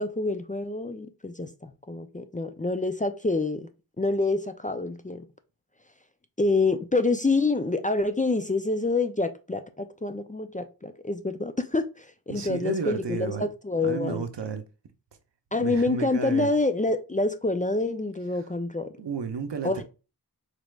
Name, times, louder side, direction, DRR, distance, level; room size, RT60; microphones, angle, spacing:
voice 1, 0.0-3.7 4.0-5.2 6.4-14.2 15.5-18.9 19.6-19.8, left 3 dB, 20° left, 0.4 m, -27 dB
voice 2, 12.3-13.5 13.8-14.6 15.6-16.5 19.0-19.8, right 5 dB, 85° right, 0.6 m, -32 dB
4.1 x 3.2 x 2.3 m
wide cardioid pair, 45°, 41 cm